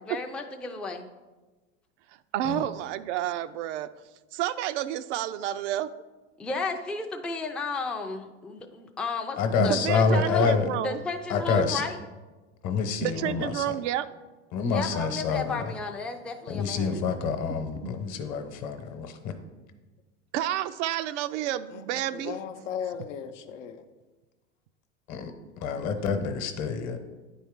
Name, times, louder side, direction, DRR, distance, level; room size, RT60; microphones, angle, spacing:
voice 1, 0.1-1.1 6.4-10.5 10.8-12.0 14.7-17.0, left 3 dB, 5° left, 3 dB, 0.3 m, -33 dB
voice 2, 2.3-3.9 4.3-5.9 9.6-11.0 11.5-11.7 13.0-14.1 16.9-17.0 17.8-17.9 20.3-22.4, right 12 dB, 75° right, 12 dB, 0.5 m, -30 dB
voice 3, 9.4-10.7 11.3-11.8 12.6-13.6 14.5-15.6 16.5-19.3 25.1-25.3 25.6-27.0, left 5 dB, 50° left, 7 dB, 1.0 m, -27 dB
voice 4, 21.7-23.8, left 8 dB, 85° left, 7 dB, 0.7 m, -37 dB
9.4 x 4.3 x 3.6 m, 1.2 s
hypercardioid pair, 105°, 36 cm